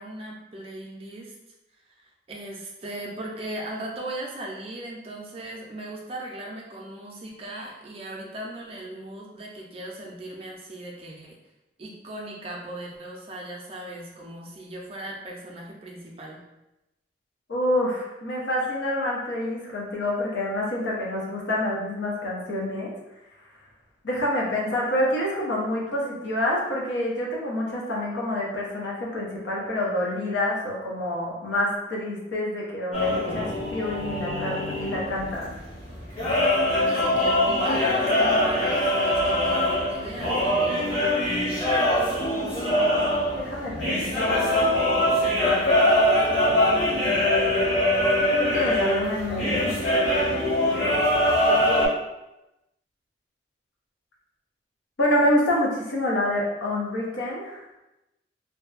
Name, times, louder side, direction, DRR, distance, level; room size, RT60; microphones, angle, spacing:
voice 1, 0.0-1.3 2.0-11.4 11.8-16.4 36.8-41.0, right 1 dB, 30° right, -2 dB, 0.4 m, -38 dB
voice 2, 17.5-22.9 24.0-35.5 42.5-42.8 43.4-44.6 48.4-49.8 55.0-57.6, left 1 dB, 80° left, -4 dB, 0.6 m, -27 dB
sound 1, 32.9-51.9, left 1 dB, 35° left, 0.8 m, -23 dB
2.6 x 2.2 x 2.4 m, 0.96 s
head